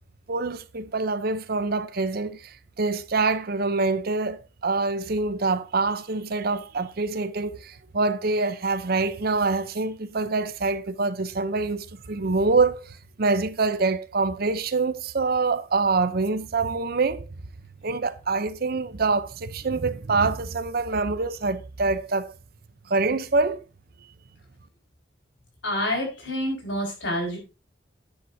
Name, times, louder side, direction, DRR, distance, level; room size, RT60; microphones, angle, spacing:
voice 1, 0.3-2.4 2.8-12.9 13.2-17.3 17.8-22.3 22.9-23.6, right 3 dB, 55° right, 0.7 m, -25 dB
voice 2, 25.6-27.4, left 1 dB, 85° left, 5.3 m, -28 dB
10.5 x 9.6 x 2.8 m
head